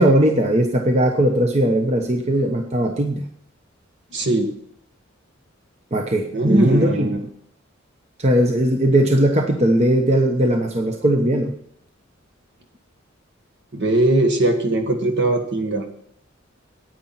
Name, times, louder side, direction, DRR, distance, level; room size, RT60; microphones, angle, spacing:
voice 1, 0.0-3.2 5.9-7.1 8.2-11.5, right 1 dB, 35° right, 3 dB, 1.0 m, -18 dB
voice 2, 4.1-4.5 6.3-7.2 13.7-15.8, right 1 dB, 60° right, 4 dB, 1.8 m, -19 dB
9.8 x 9.1 x 5.9 m, 0.68 s
head